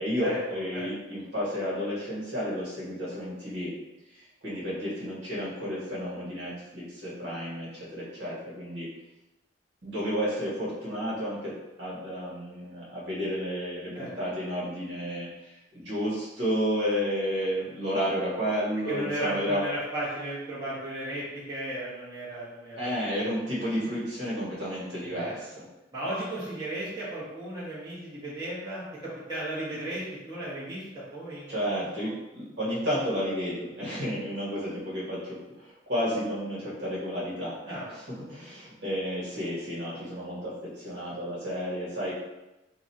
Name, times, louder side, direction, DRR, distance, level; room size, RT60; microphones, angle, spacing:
voice 1, 0.0-3.7 4.1-8.9 9.8-19.6 22.8-25.6 31.5-42.1, equal, 60° right, -8 dB, 1.4 m, -32 dB
voice 2, 18.9-23.0 25.0-25.4 25.9-32.1 37.6-37.8, right 1 dB, 20° right, -11 dB, 1.3 m, -35 dB
3.0 x 2.5 x 4.1 m, 0.98 s
head